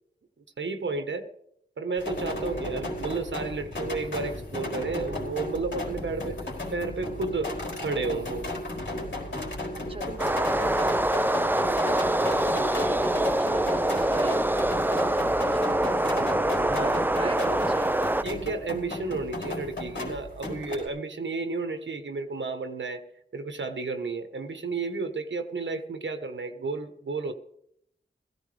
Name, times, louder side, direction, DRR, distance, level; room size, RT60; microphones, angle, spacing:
voice 1, 0.6-1.3 1.8-6.4 6.7-7.5 7.8-8.4 16.7-17.3 18.2-23.0 23.3-27.3, right 3 dB, 85° right, 7 dB, 1.3 m, -32 dB
sound 1, 2.0-20.9, left 1 dB, 80° left, 4.6 m, -34 dB
voice 2, 9.9-12.3 12.7-16.4 16.7-18.0, right 2 dB, 30° right, 9 dB, 1.3 m, -40 dB
sound 2, 10.2-18.2, right 1 dB, 10° right, 0.6 m, -25 dB
17.5 x 15.5 x 3.5 m, 0.72 s
wide cardioid pair, 60°, 19 cm